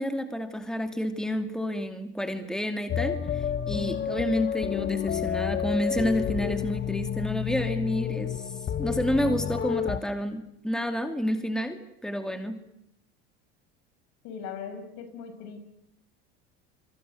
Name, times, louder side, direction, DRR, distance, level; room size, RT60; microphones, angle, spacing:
voice 1, 0.0-8.5 8.8-12.6, equal, ahead, 7 dB, 2.6 m, -30 dB
sound 1, 2.9-10.0, left 9 dB, 35° left, 1.4 m, -30 dB
voice 2, 14.2-15.6, left 6 dB, 65° left, 9 dB, 6.2 m, -39 dB
28.5 x 23.5 x 7.9 m, 0.79 s
supercardioid pair, 90°, 30 cm